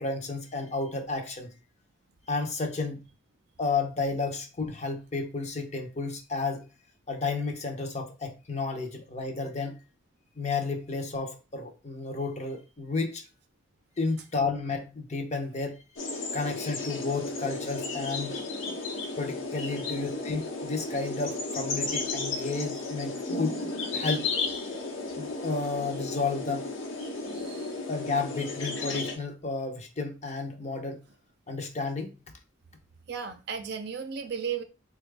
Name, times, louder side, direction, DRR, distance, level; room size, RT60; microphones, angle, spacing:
voice 1, 0.0-1.5 2.3-3.0 3.6-6.7 7.1-9.8 10.4-13.2 14.0-15.8 16.3-18.4 19.2-23.6 23.9-24.3 25.2-26.7 27.9-31.1 31.5-32.2, left 3 dB, 35° left, 0.6 m, -32 dB
sound 1, 16.0-29.2, left 3 dB, 80° left, 0.9 m, -34 dB
voice 2, 27.3-27.7 33.1-34.6, right 7 dB, 55° right, 0.5 m, -35 dB
4.0 x 2.3 x 3.3 m
head